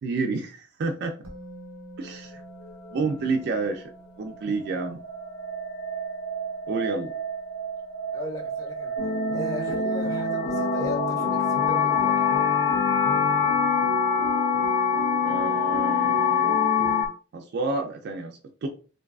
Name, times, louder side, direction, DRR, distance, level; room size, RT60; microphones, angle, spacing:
voice 1, 0.0-1.1 2.0-2.3 2.9-3.9 4.2-5.0 6.7-7.1 15.2-16.6 17.3-18.7, right 3 dB, 55° right, 0.3 m, -29 dB
Musical instrument, 1.2-9.1 9.4-9.6, right 1 dB, 90° right, 0.7 m, -49 dB
sound 1, 4.3-17.1, left 6 dB, 55° left, 0.7 m, -26 dB
voice 2, 8.1-8.9 9.3-12.2, left 1 dB, 15° left, 0.5 m, -36 dB
sound 2, 9.0-17.0, left 1 dB, 85° left, 0.9 m, -30 dB
2.6 x 2.3 x 2.3 m
head